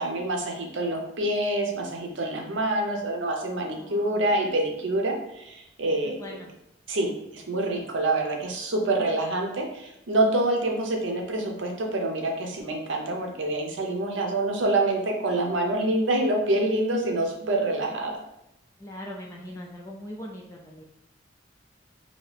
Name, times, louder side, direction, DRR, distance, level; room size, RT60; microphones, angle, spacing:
voice 1, 0.0-6.2 6.9-18.2, right 2 dB, 80° right, 2 dB, 0.7 m, -26 dB
voice 2, 3.8-4.2 6.0-6.5 18.8-20.8, left 1 dB, 15° left, -1 dB, 0.3 m, -41 dB
2.7 x 2.7 x 3.3 m, 0.83 s
head